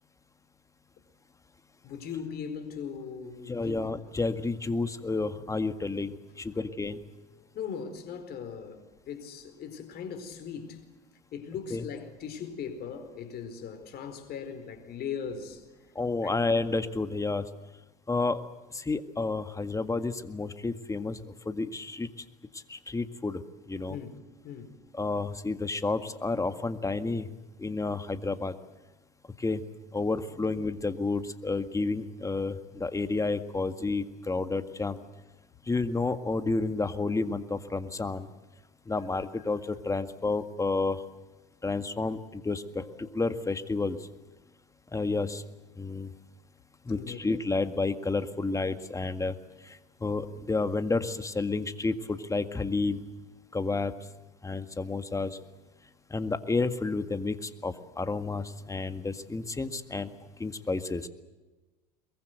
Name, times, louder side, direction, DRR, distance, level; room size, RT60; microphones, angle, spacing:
voice 1, 1.8-3.8 7.4-10.8 11.3-15.6 16.2-16.4 23.9-24.7 30.3-30.5 39.5-39.6 47.0-47.2, left 7 dB, 50° left, 4.5 m, -39 dB
voice 2, 3.5-6.1 6.4-7.0 11.7-11.8 16.0-17.4 18.1-18.4 18.7-21.2 21.5-22.1 22.7-23.4 23.7-24.0 25.0-27.3 27.6-28.5 29.4-29.6 29.9-35.0 35.7-38.3 38.9-39.6 39.9-41.0 41.6-44.0 44.9-45.4 45.8-46.1 46.9-49.3 50.0-53.0 53.5-53.9 54.4-55.3 56.1-60.1 60.4-61.1, left 3 dB, 15° left, 1.9 m, -30 dB
23.0 x 22.5 x 8.0 m
hypercardioid pair, 80°, 21 cm